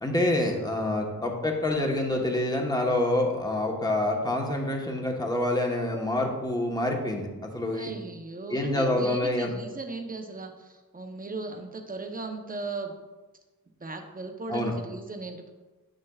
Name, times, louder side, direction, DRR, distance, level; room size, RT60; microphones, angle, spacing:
voice 1, 0.0-7.9 8.5-9.5 14.5-14.7, left 1 dB, 10° left, 0 dB, 1.1 m, -27 dB
voice 2, 7.7-13.0 13.8-15.5, right 3 dB, 25° right, 4 dB, 0.7 m, -37 dB
8.6 x 6.5 x 2.3 m, 1.2 s
wide cardioid pair, 60°, 38 cm